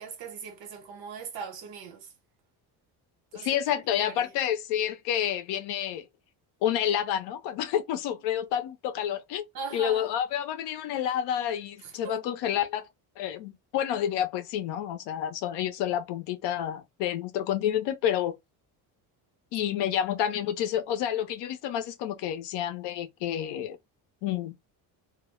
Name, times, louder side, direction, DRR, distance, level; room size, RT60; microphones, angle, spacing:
voice 1, 0.0-2.1 3.3-4.3 9.5-10.1 11.8-12.2, right 5 dB, 65° right, 1.0 m, -40 dB
voice 2, 3.3-6.0 6.6-9.5 9.7-12.8 13.2-18.4 19.5-23.8 24.2-24.5, left 10 dB, 85° left, 0.6 m, -29 dB
2.1 x 2.0 x 3.0 m
cardioid pair, 175°, 40 cm